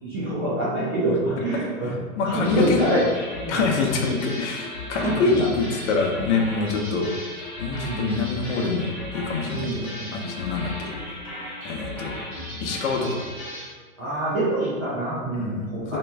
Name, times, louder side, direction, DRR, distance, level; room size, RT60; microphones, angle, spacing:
voice 1, 0.0-2.0 2.2-3.1 3.4-3.6 4.0-4.1 4.9-5.3 7.7-8.0 9.4-10.3 12.5-12.7 14.0-16.0, right 1 dB, 20° right, -8 dB, 0.3 m, -26 dB
voice 2, 2.2-2.8 3.5-7.1 7.6-10.9 11.6-12.1 12.6-13.1 15.3-16.0, left 4 dB, 55° left, 2 dB, 0.7 m, -25 dB
sound 1, 2.4-13.7, left 1 dB, 10° left, 1.0 m, -36 dB
3.4 x 2.9 x 3.3 m, 1.4 s
supercardioid pair, 155°, 41 cm